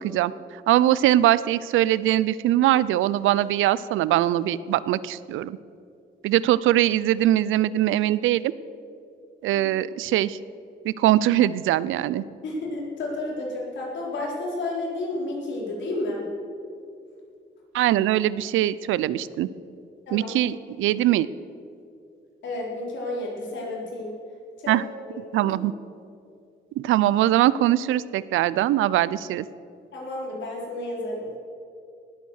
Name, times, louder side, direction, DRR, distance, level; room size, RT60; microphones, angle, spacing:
voice 1, 0.0-5.6 6.2-8.5 9.4-10.4 10.8-12.2 17.7-19.5 20.1-21.3 24.7-24.8 25.3-25.7 26.8-29.5, right 13 dB, 85° right, 18 dB, 0.5 m, -22 dB
voice 2, 12.4-16.3 20.1-20.3 22.4-24.2 24.6-25.5 29.9-31.3, left 2 dB, 65° left, -3 dB, 4.3 m, -31 dB
19.0 x 8.4 x 6.4 m, 2.5 s
cardioid pair, 90°, 20 cm